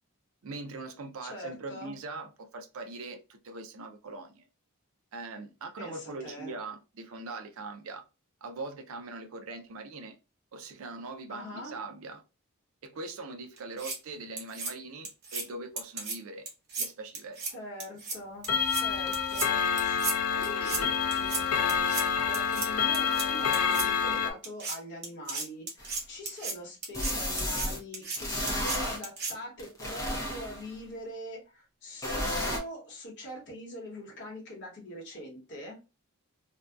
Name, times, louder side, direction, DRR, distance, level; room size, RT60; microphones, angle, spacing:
voice 1, 0.4-4.5 5.1-8.0 8.4-10.2 10.5-12.2 12.8-16.5 16.8-17.5, right 3 dB, 65° right, 0.5 m, -41 dB
voice 2, 1.2-1.9 5.8-6.5 11.3-11.8 17.5-35.8, left 1 dB, 50° left, 1.0 m, -43 dB
sound 1, 13.6-14.0 14.4-14.7 15.0-15.4 15.8-16.2 16.5-16.9 17.1-17.5 17.8-18.2 18.4-18.8 19.1-19.5 19.8-20.1 20.4-20.8 21.1-21.4 21.7-22.0 22.3-22.7 22.9-23.3 23.5-23.9 24.4-24.8 25.0-26.5 26.8-27.1 27.4-27.7 27.9-28.2 28.5-28.8 29.0-29.3, right 4 dB, 50° right, 0.9 m, -34 dB
Clock, 18.5-24.3, left 7 dB, 75° left, 0.4 m, -28 dB
sound 2, 25.8-25.9 26.9-27.8 28.2-29.0 29.6-30.7 32.0-32.6, equal, 15° left, 0.6 m, -32 dB
2.6 x 2.2 x 2.2 m
head